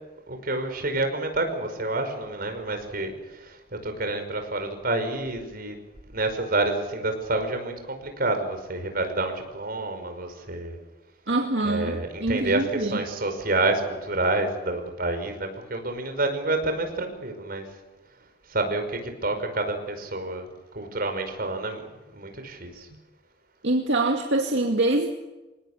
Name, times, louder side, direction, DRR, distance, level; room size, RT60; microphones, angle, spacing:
voice 1, 0.3-5.8 6.1-10.8 11.6-17.7 18.5-20.5 20.8-22.9, right 2 dB, 55° right, 6 dB, 5.4 m, -28 dB
voice 2, 11.3-13.0 23.6-25.1, right 2 dB, 70° right, 2 dB, 2.4 m, -24 dB
26.5 x 19.0 x 8.4 m, 1.1 s
head